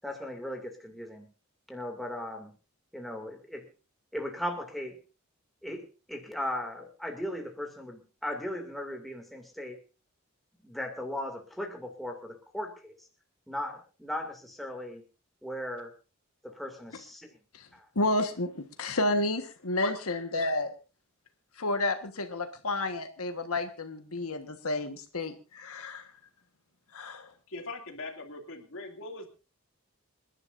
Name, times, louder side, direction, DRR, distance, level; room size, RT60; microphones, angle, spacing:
voice 1, 0.0-1.3 1.7-2.6 2.9-3.7 4.1-5.0 5.6-9.8 10.6-13.0 13.5-15.0 15.4-15.9 16.4-17.4 17.7-17.9, left 1 dB, ahead, 1 dB, 2.5 m, -37 dB
voice 2, 17.9-20.7 21.6-26.1 26.9-27.3, left 2 dB, 80° left, 6 dB, 1.5 m, -31 dB
voice 3, 27.5-29.3, left 3 dB, 65° left, 3 dB, 2.6 m, -39 dB
27.5 x 11.0 x 2.6 m, 0.33 s
head